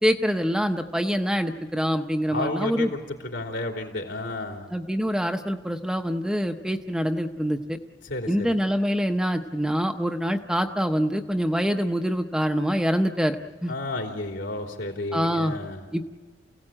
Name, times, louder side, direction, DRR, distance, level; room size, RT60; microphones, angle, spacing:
voice 1, 0.0-2.9 4.7-7.8 8.3-13.7 15.1-15.6 15.9-16.0, equal, 5° right, 5 dB, 0.7 m, -25 dB
voice 2, 2.3-3.0 3.3-4.6 8.0-8.6 13.7-15.8, left 2 dB, 75° left, 2 dB, 3.4 m, -31 dB
28.5 x 16.5 x 8.7 m, 1.3 s
head